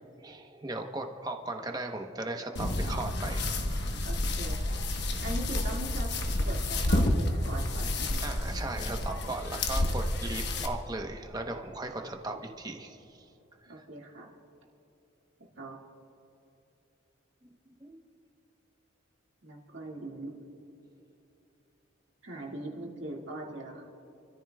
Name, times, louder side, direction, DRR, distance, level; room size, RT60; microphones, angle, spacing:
voice 1, 0.2-3.5 8.2-13.2 13.8-13.9 17.4-18.0, right 2 dB, 20° right, 3 dB, 0.9 m, -37 dB
sound 1, 2.6-10.7, left 1 dB, 55° left, 1.1 m, -30 dB
voice 2, 4.0-4.8 5.2-6.1 6.4-8.5 12.3-12.4 13.7-14.3 15.6-15.8 19.4-20.3 22.2-23.8, right 1 dB, 65° right, -1 dB, 2.0 m, -41 dB
29.5 x 14.0 x 2.3 m, 2.9 s
head